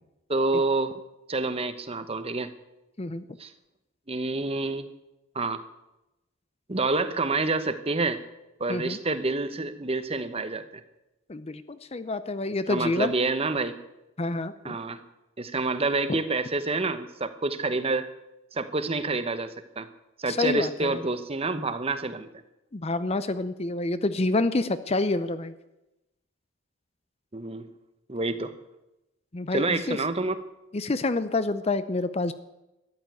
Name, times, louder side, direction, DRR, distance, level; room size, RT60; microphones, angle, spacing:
voice 1, 0.3-0.9 1.3-2.5 3.4-3.5 4.1-4.9 5.3-5.6 6.7-8.2 8.6-10.6 12.7-13.8 14.6-15.0 15.4-18.1 18.5-19.9 20.2-22.3 27.3-27.7 28.1-28.5 29.5-30.4, right 3 dB, 25° right, 11 dB, 0.9 m, -28 dB
voice 2, 11.3-11.6 11.9-13.1 14.2-14.8 16.1-16.2 20.3-21.0 22.7-25.5 29.3-30.0 30.7-32.3, left 2 dB, 30° left, 12 dB, 0.6 m, -27 dB
13.5 x 11.0 x 9.3 m, 0.96 s
head